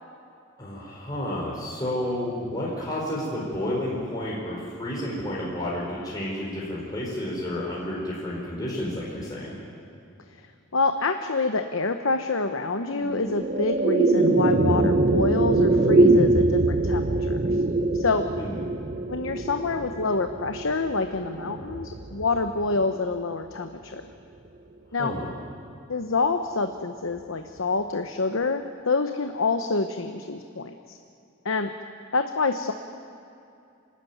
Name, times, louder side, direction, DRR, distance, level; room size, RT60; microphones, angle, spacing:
voice 1, 0.6-9.5 18.4-18.6 25.0-25.3, left 1 dB, 20° left, -6 dB, 4.5 m, -31 dB
voice 2, 10.7-17.6 17.9-18.3 19.1-24.0 24.9-25.1 25.9-31.0 31.4-31.7 32.1-32.7, left 3 dB, 70° left, 7 dB, 0.9 m, -27 dB
sound 1, 12.9-23.4, right 2 dB, 40° right, 0.7 m, -23 dB
27.0 x 13.0 x 9.3 m, 2.6 s
head